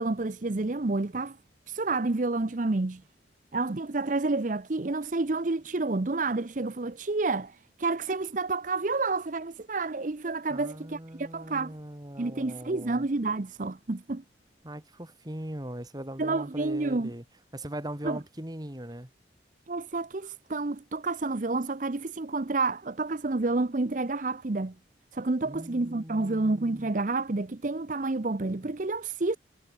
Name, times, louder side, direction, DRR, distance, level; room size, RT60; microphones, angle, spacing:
voice 1, 0.0-1.4 1.7-3.0 3.5-11.7 12.2-14.2 16.2-17.1 18.0-18.2 19.7-24.7 25.1-29.4, right 3 dB, 45° right, 0.7 m, -29 dB
voice 2, 10.5-13.1 14.6-17.2 17.5-19.1 25.4-26.9, right 1 dB, 20° right, 2.2 m, -40 dB
head